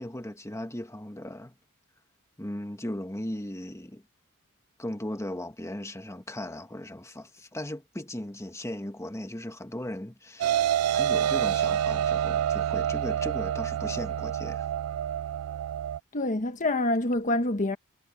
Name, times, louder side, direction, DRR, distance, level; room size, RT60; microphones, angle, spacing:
voice 1, 0.0-1.6 2.4-4.0 4.8-14.7, left 1 dB, 15° left, 1.5 m, -37 dB
sound 1, 10.4-16.0, right 9 dB, 85° right, 0.3 m, -27 dB
voice 2, 16.1-17.8, left 2 dB, 35° left, 1.2 m, -26 dB
head